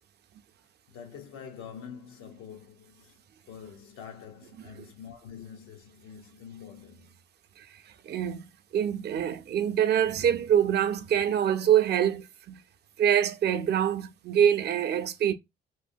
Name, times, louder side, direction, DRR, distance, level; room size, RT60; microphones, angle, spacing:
voice 1, 0.9-3.2 3.5-7.2, left 7 dB, 90° left, 0.8 m, -46 dB
voice 2, 8.1-8.5 8.7-12.6 13.0-15.3, right 9 dB, 55° right, 0.4 m, -25 dB
3.1 x 2.1 x 2.6 m
cardioid pair, 90°, 20 cm